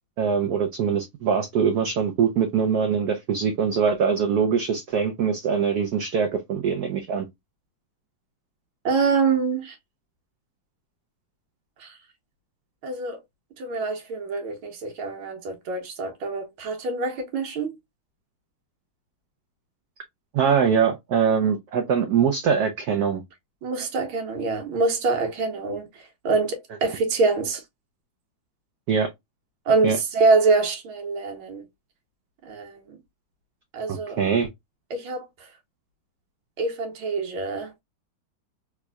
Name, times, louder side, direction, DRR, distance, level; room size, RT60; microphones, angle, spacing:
voice 1, 0.2-7.3 20.3-23.2 28.9-29.1 29.8-30.0 33.9-34.5, right 6 dB, 70° right, 0.9 m, -23 dB
voice 2, 8.9-9.8 11.8-12.0 12.8-13.2 13.6-17.8 23.6-27.6 29.7-31.7 32.4-33.0 33.7-34.2 34.9-35.5 36.6-37.7, right 4 dB, 85° right, 1.8 m, -25 dB
3.4 x 3.2 x 2.2 m
omnidirectional pair, 2.2 m